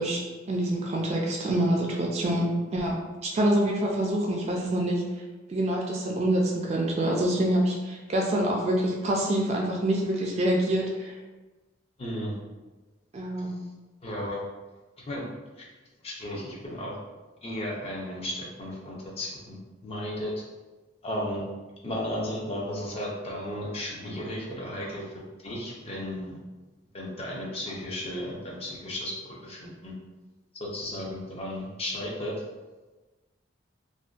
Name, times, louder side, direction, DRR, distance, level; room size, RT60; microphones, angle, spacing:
voice 1, 0.0-3.0 3.2-5.0 5.5-11.1 13.1-13.6, right 1 dB, 35° right, -1 dB, 0.3 m, -26 dB
voice 2, 12.0-12.3 14.0-14.4 15.1-15.2 15.6-15.7 16.0-17.0 17.4-19.6 19.8-20.3 21.0-21.4 21.8-25.0 25.4-26.4 26.9-29.9 30.6-32.4, left 1 dB, 30° left, -3 dB, 0.5 m, -34 dB
2.5 x 2.1 x 2.3 m, 1.2 s
head